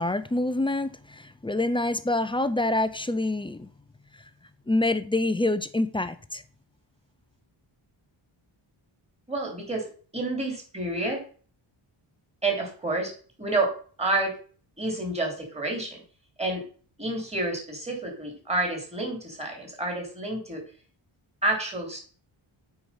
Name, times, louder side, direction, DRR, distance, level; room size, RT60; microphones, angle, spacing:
voice 1, 0.0-3.7 4.7-6.4, left 2 dB, 10° left, 0.4 m, -26 dB
voice 2, 9.3-9.9 10.1-11.2 12.4-13.1 13.4-13.7 14.0-14.3 14.8-16.0 16.4-16.6 17.0-20.6 21.4-22.0, right 2 dB, 15° right, 2.9 m, -29 dB
8.7 x 4.7 x 5.7 m
wide cardioid pair, 125°, 49 cm